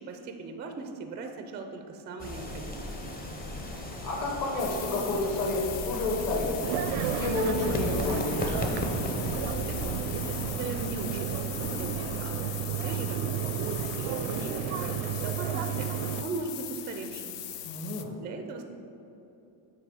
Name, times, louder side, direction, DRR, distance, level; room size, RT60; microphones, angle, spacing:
voice 1, 0.0-2.9 9.7-17.4 18.2-18.6, right 3 dB, 25° right, 5 dB, 0.3 m, -39 dB
Match Strike, 2.2-12.5, left 1 dB, 20° left, 0.6 m, -36 dB
voice 2, 4.0-6.6 7.1-8.4 17.6-18.1, left 2 dB, 40° left, -2 dB, 1.2 m, -30 dB
sound 1, 4.6-18.0, left 12 dB, 60° left, 0.5 m, -40 dB
sound 2, 6.6-16.2, right 9 dB, 80° right, 0.5 m, -32 dB
9.2 x 3.1 x 4.8 m, 2.9 s
cardioid pair, 135°, 49 cm